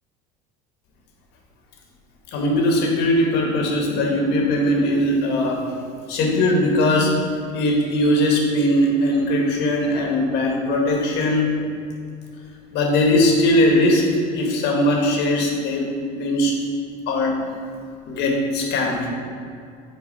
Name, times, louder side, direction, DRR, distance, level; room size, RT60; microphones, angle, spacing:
voice 1, 2.3-5.7 6.1-7.2 7.5-11.6 12.7-16.6 17.1-17.4 18.1-19.1, left 1 dB, 60° left, 0 dB, 1.6 m, -20 dB
8.3 x 4.5 x 4.1 m, 2.4 s
cardioid pair, 130°, 20 cm